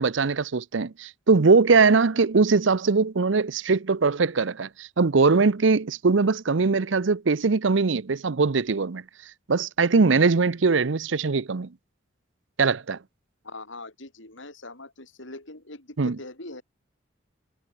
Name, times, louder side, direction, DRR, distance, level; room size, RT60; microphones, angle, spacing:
voice 1, 0.0-9.0 9.5-11.7 12.6-13.0 16.0-16.2, right 4 dB, 75° right, 0.7 m, -21 dB
voice 2, 13.4-16.6, left 2 dB, 75° left, 5.6 m, -42 dB
head